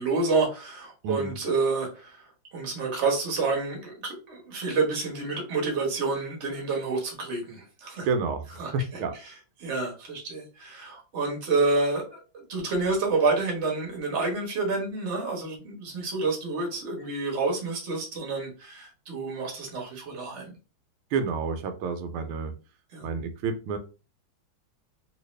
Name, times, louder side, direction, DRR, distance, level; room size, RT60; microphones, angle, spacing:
voice 1, 0.0-2.2 2.5-8.1 8.6-8.7 9.6-12.2 12.5-20.5 22.9-23.1, right 3 dB, 40° right, 0 dB, 1.3 m, -28 dB
voice 2, 1.0-1.3 8.0-9.1 21.1-22.5 23.0-23.8, right 4 dB, 90° right, 7 dB, 1.5 m, -29 dB
3.3 x 2.8 x 3.1 m, 0.32 s
omnidirectional pair, 2.3 m